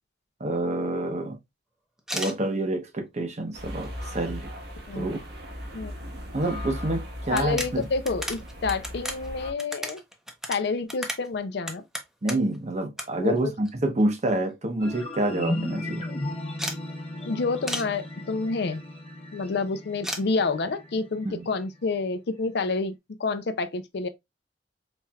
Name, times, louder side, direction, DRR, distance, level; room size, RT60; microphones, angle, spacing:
voice 1, 0.4-1.4 2.1-4.5 4.9-5.2 6.3-7.9 12.2-16.0 21.2-21.4, right 1 dB, 40° right, 0.8 m, -27 dB
sound 1, 2.0-2.4 3.1-3.2 3.6-4.3 4.7-4.8 5.0-5.1 6.5-6.6 6.8-6.9 7.3-12.6 13.0-13.1 13.4-14.1 14.5-14.6 14.8-14.9 15.2-15.5 16.6-16.8 17.7-17.9 20.0-20.2, equal, 5° right, 0.7 m, -35 dB
sound 2, 3.5-9.5, left 1 dB, 65° right, 1.2 m, -38 dB
voice 2, 7.3-10.0 10.5-11.8 13.2-13.5 17.3-18.8 19.3-22.9 23.2-24.1, left 4 dB, 65° left, 0.5 m, -28 dB
sound 3, 14.8-21.8, left 1 dB, 35° left, 1.0 m, -36 dB
4.3 x 3.2 x 2.3 m
head